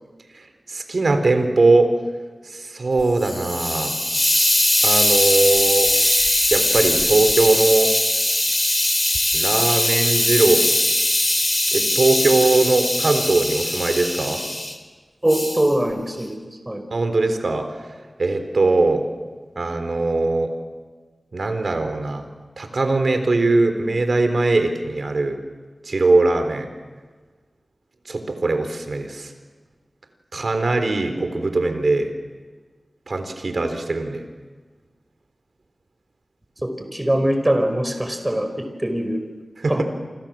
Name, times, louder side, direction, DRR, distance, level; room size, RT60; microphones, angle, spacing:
voice 1, 0.7-1.9 2.5-3.9 4.8-5.9 6.5-7.9 9.3-10.6 11.7-14.4 16.9-17.7 18.2-19.0 19.6-20.5 21.3-22.3 22.6-25.4 25.9-26.7 28.1-29.3 30.3-32.1 33.1-34.2 39.6-39.8, right 3 dB, 70° right, 7 dB, 4.0 m, -20 dB
Hiss, 3.0-14.7 15.3-15.7, left 1 dB, 20° left, 3.7 m, -20 dB
voice 2, 15.2-16.4 16.7-16.8 36.6-39.2 39.6-39.8, right 1 dB, 20° right, 7 dB, 5.1 m, -22 dB
28.5 x 27.0 x 7.7 m, 1.4 s
wide cardioid pair, 75°, 0 cm